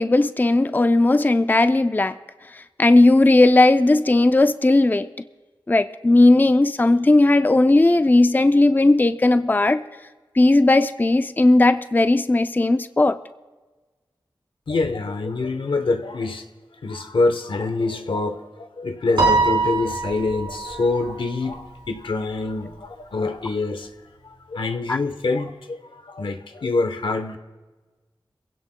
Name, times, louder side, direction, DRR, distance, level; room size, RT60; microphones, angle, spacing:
voice 1, 0.0-2.2 2.5-5.1 5.7-9.8 10.4-13.2 24.9-25.0, left 2 dB, 20° left, 0.4 m, -16 dB
voice 2, 14.7-16.5 16.8-23.9 24.2-27.4, left 3 dB, 85° left, 0.9 m, -25 dB
Piano, 19.2-21.7, right 3 dB, 70° right, 3.6 m, -23 dB
24.0 x 16.5 x 2.2 m
wide cardioid pair, 60°, 8 cm